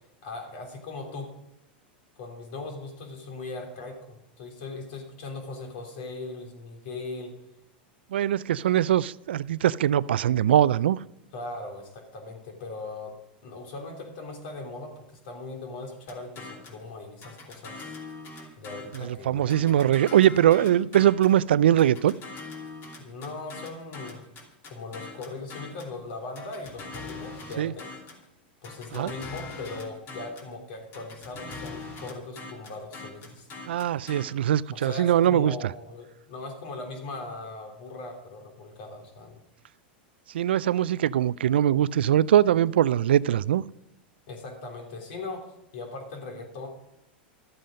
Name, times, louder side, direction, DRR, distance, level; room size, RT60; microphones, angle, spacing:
voice 1, 0.2-1.3 2.2-7.4 11.3-13.1 13.4-17.9 18.6-19.8 23.0-24.2 24.7-27.9 28.6-33.5 34.7-39.4 44.3-46.7, left 3 dB, 65° left, 2 dB, 3.2 m, -39 dB
voice 2, 8.1-11.0 18.9-22.1 27.6-27.7 28.9-29.1 33.7-35.7 40.3-43.6, right 11 dB, 85° right, 20 dB, 0.4 m, -22 dB
sound 1, 16.1-16.8 17.2-19.1 19.5-21.4 21.8-26.0 26.4-28.3 28.6-30.5 30.9-34.2, left 3 dB, 40° left, 2.6 m, -42 dB
12.5 x 7.8 x 5.1 m, 0.85 s
hypercardioid pair, 120°, 6 cm